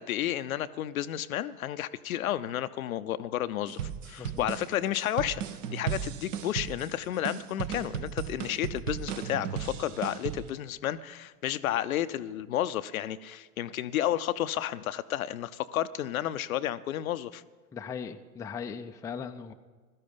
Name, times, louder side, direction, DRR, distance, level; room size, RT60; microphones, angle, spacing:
voice 1, 0.0-5.4 5.7-17.4, left 12 dB, 65° left, 13 dB, 0.7 m, -32 dB
sound 1, 3.7-10.5, right 9 dB, 55° right, 1.1 m, -36 dB
voice 2, 17.7-19.5, left 6 dB, 5° left, 5 dB, 0.5 m, -38 dB
16.5 x 12.5 x 5.3 m, 1.4 s
figure-of-eight pair, 90°, 45 cm